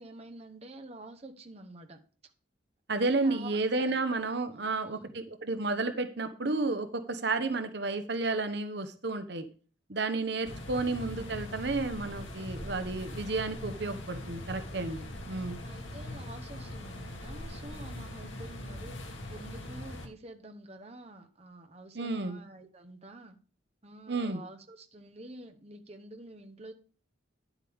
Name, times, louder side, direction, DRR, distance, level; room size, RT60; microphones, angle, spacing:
voice 1, 0.0-2.0 3.0-4.0 4.5-5.1 10.3-10.7 15.6-23.4 23.8-26.7, right 2 dB, 30° right, 6 dB, 1.0 m, -48 dB
voice 2, 2.9-9.4 9.9-15.6 21.9-22.4 24.1-24.4, right 3 dB, 55° right, 9 dB, 0.9 m, -32 dB
sound 1, 10.4-20.1, left 1 dB, 80° left, 2.0 m, -41 dB
10.5 x 8.2 x 3.5 m, 0.39 s
head